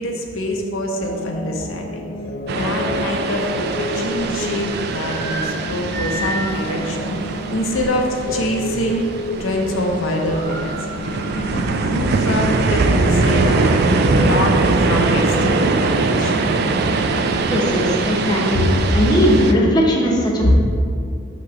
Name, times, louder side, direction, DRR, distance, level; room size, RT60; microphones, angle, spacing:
voice 1, 0.0-2.0 2.5-10.8 11.3-13.7 14.1-16.4 18.5-18.6 20.4-20.5, left 1 dB, 85° left, 1 dB, 0.7 m, -24 dB
sound 1, 1.0-19.6, left 2 dB, 55° left, 0.4 m, -31 dB
sound 2, 2.5-19.5, right 3 dB, 50° right, 0.3 m, -21 dB
sound 3, 4.5-8.1 8.6-8.7 9.1-9.5 9.7-9.8 10.0-12.0 12.4-12.5 13.1-14.4, right 1 dB, 20° right, 1.3 m, -33 dB
voice 2, 17.5-18.7 18.9-20.5, equal, 20° left, -3 dB, 0.8 m, -18 dB
6.1 x 3.0 x 5.7 m, 2.5 s
head